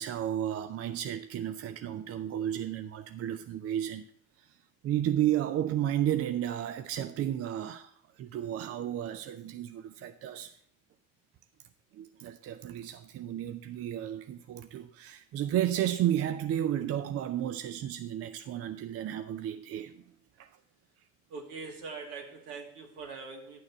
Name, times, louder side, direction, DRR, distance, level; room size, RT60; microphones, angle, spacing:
voice 1, 0.0-4.0 4.4-4.5 4.8-10.6 11.9-20.0 20.4-20.5, right 11 dB, 35° right, 0.5 m, -32 dB
voice 2, 21.3-23.6, right 4 dB, 60° right, 2.4 m, -42 dB
11.0 x 6.4 x 4.3 m
hypercardioid pair, 70°, 45 cm